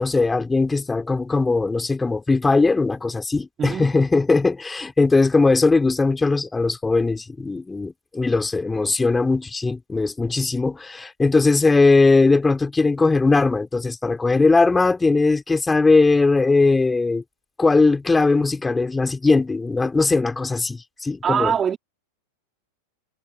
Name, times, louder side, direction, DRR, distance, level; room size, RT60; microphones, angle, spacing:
voice 1, 0.0-17.2 17.6-21.5, left 3 dB, 10° left, 4.6 m, -19 dB
voice 2, 3.6-3.9 21.2-21.8, right 7 dB, 20° right, 3.7 m, -23 dB
figure-of-eight pair, 90°, 0 cm